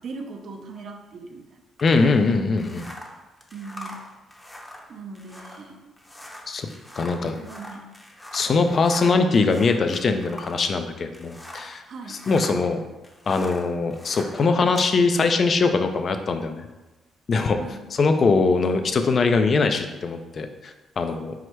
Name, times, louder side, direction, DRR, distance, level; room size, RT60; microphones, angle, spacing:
voice 1, 0.0-1.6 3.5-4.1 4.9-5.9 7.3-7.9 11.9-12.2 17.6-17.8, right 4 dB, 60° right, 4 dB, 0.5 m, -39 dB
voice 2, 1.8-2.8 6.5-6.7 7.0-7.3 8.3-11.8 12.1-12.8 13.3-16.6 17.3-17.6 17.9-21.3, left 4 dB, 45° left, 7 dB, 0.4 m, -22 dB
sound 1, 1.8-11.8 12.1-14.9, left 1 dB, 10° left, 0.7 m, -42 dB
4.8 x 2.1 x 4.4 m, 1.1 s
cardioid pair, 90°, 0 cm